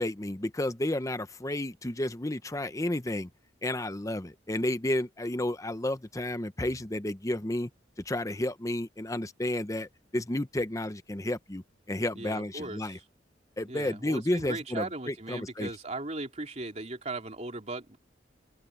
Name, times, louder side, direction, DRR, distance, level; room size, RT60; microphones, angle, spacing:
voice 1, 0.0-3.3 3.6-7.7 8.0-13.0 13.6-15.7, left 1 dB, 20° left, 0.8 m, -31 dB
voice 2, 12.1-13.0 13.7-18.0, right 2 dB, 40° right, 3.4 m, -38 dB
open air
head